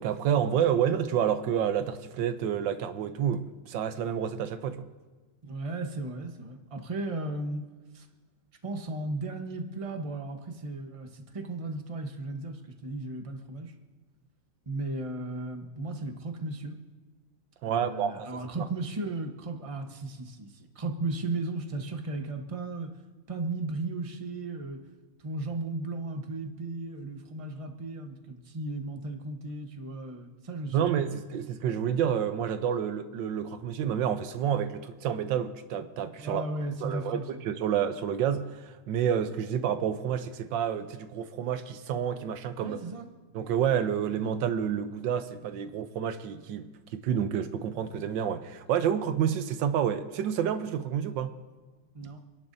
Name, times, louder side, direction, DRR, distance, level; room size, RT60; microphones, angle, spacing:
voice 1, 0.0-4.9 17.6-18.3 30.7-36.4 36.8-42.8 43.3-51.4, right 8 dB, 70° right, 1.4 m, -29 dB
voice 2, 5.4-7.6 7.9-8.1 8.6-13.7 14.7-16.8 17.6-22.9 23.3-24.8 25.2-31.0 36.2-37.4 42.6-43.1 51.9-52.2, right 2 dB, 25° right, 0.8 m, -35 dB
27.5 x 11.0 x 2.7 m
omnidirectional pair, 2.2 m